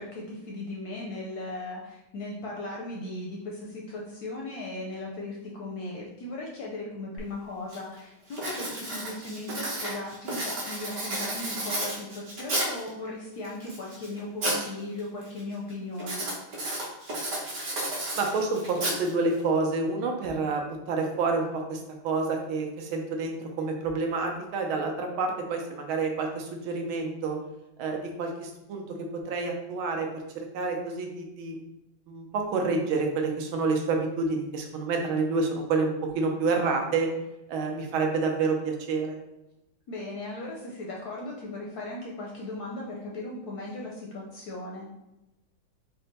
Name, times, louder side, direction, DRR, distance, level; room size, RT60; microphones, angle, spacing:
voice 1, 0.0-16.2 39.9-44.9, left 2 dB, 70° left, -2 dB, 0.9 m, -37 dB
Writing, 7.2-7.3 7.7-8.0 8.3-12.9 13.4-14.7 15.0-15.4 16.0-19.4, right 1 dB, 55° right, 1.4 m, -32 dB
voice 2, 18.2-27.4 27.8-31.6 32.1-37.2 37.5-39.2, right 3 dB, 85° right, 2 dB, 1.5 m, -28 dB
4.3 x 2.2 x 3.9 m, 0.92 s
omnidirectional pair, 2.2 m